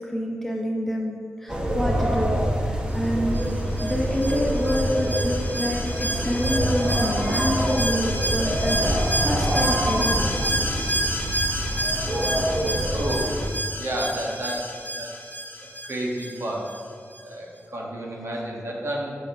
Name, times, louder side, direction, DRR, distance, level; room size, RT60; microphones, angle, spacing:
voice 1, 0.0-3.5 3.8-10.3, equal, 5° left, -1 dB, 1.1 m, -28 dB
sound 1, 1.5-13.5, equal, 15° right, 0.9 m, -25 dB
Alarm, 3.3-16.8 17.1-17.2, right 1 dB, 40° left, 1.1 m, -30 dB
voice 2, 12.9-13.3 13.8-15.1 15.8-16.7 17.2-19.2, right 1 dB, 60° right, -2 dB, 1.4 m, -31 dB
6.8 x 5.3 x 5.3 m, 2.1 s
wide cardioid pair, 95°, 5 cm